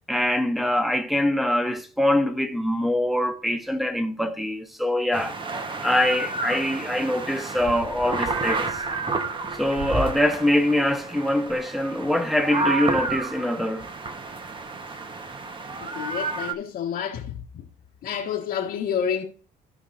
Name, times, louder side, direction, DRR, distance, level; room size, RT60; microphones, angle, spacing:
voice 1, 0.1-5.4 5.8-8.8 9.5-13.9, left 1 dB, ahead, 1.4 m, -24 dB
sound 1, 5.1-16.5, right 3 dB, 30° right, 1.2 m, -30 dB
voice 2, 15.8-17.4 18.0-19.2, left 8 dB, 65° left, 1.6 m, -29 dB
16.0 x 5.7 x 2.6 m
cardioid pair, 110°, 17 cm